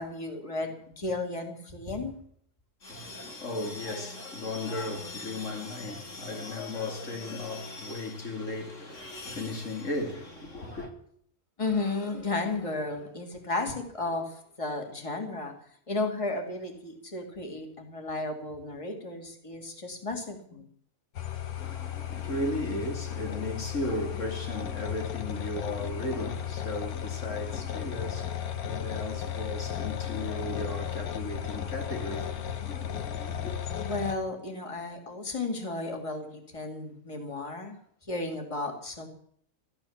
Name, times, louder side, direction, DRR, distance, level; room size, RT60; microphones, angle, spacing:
voice 1, 0.0-2.2 11.6-15.5 15.9-20.7 33.8-37.8 38.0-39.1, left 3 dB, 20° left, 2.5 m, -33 dB
voice 2, 2.8-10.9 21.5-33.5, left 2 dB, 55° left, 3.1 m, -36 dB
sound 1, 21.2-34.1, left 9 dB, 90° left, 1.6 m, -35 dB
14.0 x 13.0 x 7.2 m
omnidirectional pair, 1.5 m